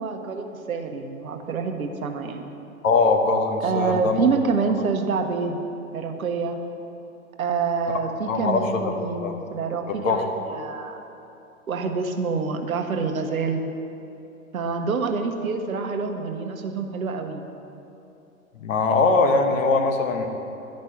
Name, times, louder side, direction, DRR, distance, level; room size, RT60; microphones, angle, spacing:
voice 1, 0.0-2.5 3.6-5.6 5.9-6.6 7.4-11.0 11.7-13.6 14.5-17.5, right 5 dB, 75° right, 5 dB, 1.0 m, -27 dB
voice 2, 2.8-4.2 8.3-8.8 9.2-9.3 10.0-10.2 18.6-20.3, left 3 dB, 65° left, 5 dB, 1.2 m, -21 dB
10.5 x 5.3 x 5.8 m, 2.9 s
hypercardioid pair, 110°, 42 cm